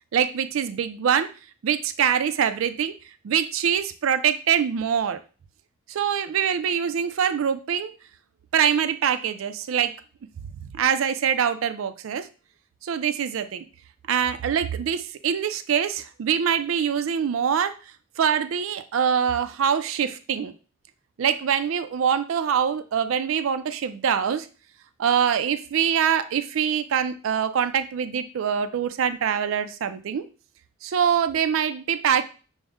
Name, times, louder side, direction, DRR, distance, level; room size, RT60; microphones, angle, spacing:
voice 1, 0.1-1.3 1.6-2.9 3.2-5.2 5.9-7.9 8.5-9.9 10.7-12.3 12.8-13.6 14.1-17.7 18.2-20.5 21.2-24.5 25.0-30.3 30.8-32.2, right 8 dB, 80° right, 11 dB, 0.4 m, -24 dB
6.1 x 2.1 x 3.5 m, 0.35 s
head